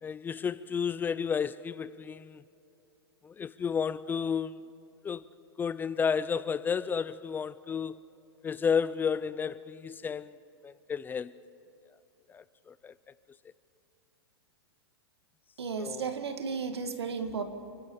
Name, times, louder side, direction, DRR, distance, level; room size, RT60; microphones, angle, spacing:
voice 1, 0.0-2.4 3.2-4.6 5.0-5.2 5.6-8.0 8.4-10.4 10.6-11.3 12.3-12.9 15.8-16.1, left 6 dB, 15° left, 0.4 m, -32 dB
voice 2, 15.6-17.4, right 5 dB, 85° right, 1.9 m, -34 dB
29.5 x 12.0 x 7.2 m
hypercardioid pair, 120°, 13 cm